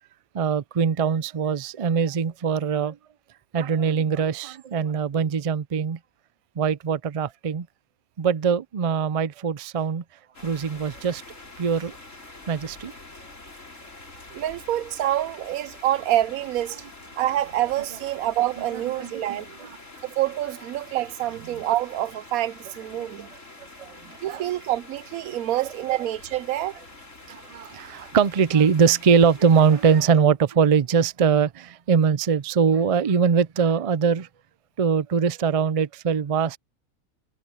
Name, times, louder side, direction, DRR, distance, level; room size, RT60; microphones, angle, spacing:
voice 1, 0.3-3.0 3.5-6.0 6.6-7.7 8.2-10.0 10.4-11.2 11.6-12.0 12.5-12.9 18.7-19.7 22.9-23.1 23.8-24.0 24.3-24.4 25.9-26.0 27.3-34.3 34.8-36.6, right 6 dB, 55° right, 0.3 m, -22 dB
sound 1, 10.3-30.0, left 2 dB, 65° left, 4.2 m, -46 dB
voice 2, 14.3-16.8 17.2-19.5 20.0-23.3 24.2-26.8, right 13 dB, 85° right, 1.1 m, -26 dB
omnidirectional pair, 1.4 m